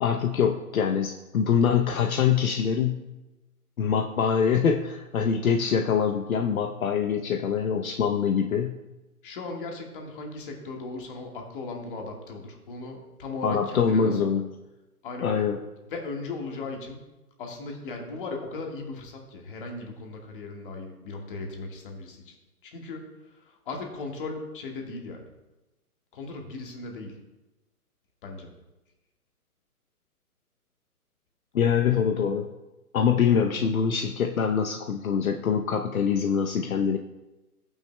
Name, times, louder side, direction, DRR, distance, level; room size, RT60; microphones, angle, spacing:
voice 1, 0.0-3.0 3.8-8.8 13.4-14.5 15.2-15.6 31.5-32.5 32.9-37.0, left 7 dB, 65° left, 4 dB, 0.8 m, -24 dB
voice 2, 9.2-14.3 15.0-15.5 15.8-17.0 17.4-22.3 22.6-25.3 26.1-27.2 28.2-28.5, left 3 dB, 35° left, 2 dB, 1.6 m, -37 dB
15.0 x 9.1 x 2.2 m, 1.0 s
hypercardioid pair, 160°, 45 cm